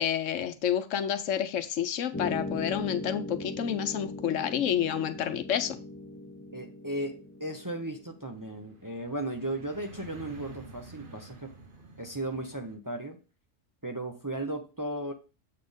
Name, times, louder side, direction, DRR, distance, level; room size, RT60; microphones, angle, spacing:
voice 1, 0.0-5.8, left 9 dB, 75° left, 10 dB, 1.1 m, -29 dB
sound 1, 2.1-8.7, left 1 dB, 20° left, 0.4 m, -39 dB
sound 2, 6.4-12.8, right 3 dB, 45° right, 1.2 m, -51 dB
voice 2, 6.5-11.5 12.0-13.2 13.8-15.1, right 1 dB, 20° right, 4 dB, 0.7 m, -36 dB
7.5 x 4.3 x 5.2 m, 0.31 s
omnidirectional pair, 1.3 m